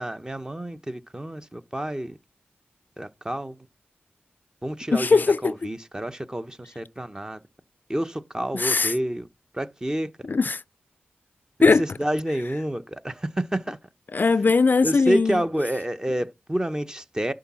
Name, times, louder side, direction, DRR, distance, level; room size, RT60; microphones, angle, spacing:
voice 1, 0.0-2.2 3.0-3.6 4.6-7.4 7.9-9.3 9.5-10.1 11.6-13.8 14.8-17.3, right 1 dB, 15° right, 0.9 m, -29 dB
voice 2, 4.9-5.5 8.5-8.9 10.3-10.6 11.6-11.8 14.1-15.4, left 4 dB, 50° left, 0.4 m, -19 dB
11.0 x 3.7 x 6.1 m
cardioid pair, 55°, 4 cm